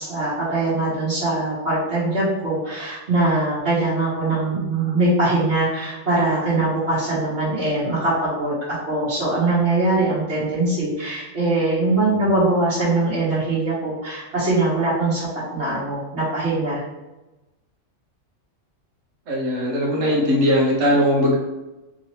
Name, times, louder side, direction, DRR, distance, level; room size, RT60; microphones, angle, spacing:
voice 1, 0.0-16.8, right 2 dB, 55° right, -12 dB, 1.6 m, -22 dB
voice 2, 19.3-21.4, equal, 75° right, -3 dB, 1.4 m, -19 dB
3.6 x 2.8 x 3.1 m, 1.0 s
omnidirectional pair, 1.4 m